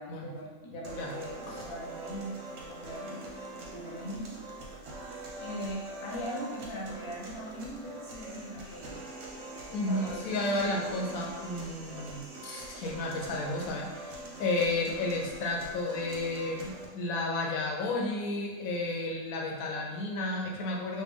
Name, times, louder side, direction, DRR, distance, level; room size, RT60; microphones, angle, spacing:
voice 1, 0.0-2.4 2.7-3.2 3.5-4.4 5.4-9.0 9.8-10.9, equal, 35° left, -4 dB, 0.5 m, -40 dB
sound 1, 0.8-16.8, right 2 dB, 60° right, 0.9 m, -43 dB
voice 2, 9.7-21.0, left 2 dB, 85° left, -1 dB, 1.1 m, -32 dB
3.2 x 2.5 x 3.4 m, 1.3 s
omnidirectional pair, 1.4 m